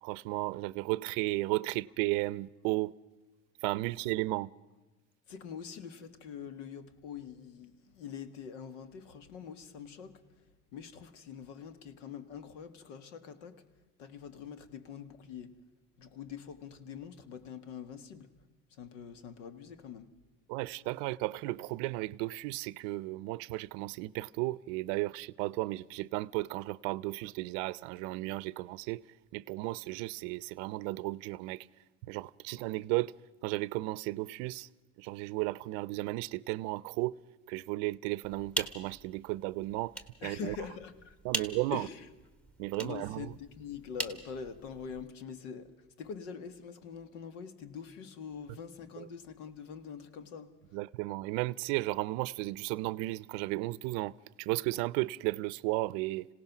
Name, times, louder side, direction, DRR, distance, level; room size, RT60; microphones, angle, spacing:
voice 1, 0.0-2.9 3.6-4.5 20.5-29.0 29.3-31.7 32.0-33.1 33.4-34.7 35.0-37.1 37.5-40.0 40.2-40.6 41.2-41.9 42.6-43.3 49.0-49.1 50.7-56.3, right 20 dB, 65° right, 0.6 m, -34 dB
voice 2, 5.3-13.6 14.0-15.6 16.0-18.3 18.7-20.1 40.2-42.1 42.8-50.8, left 6 dB, 85° left, 1.8 m, -44 dB
sound 1, 38.2-45.1, right 1 dB, 5° left, 1.2 m, -42 dB
26.5 x 17.5 x 6.0 m
cardioid pair, 145°, 36 cm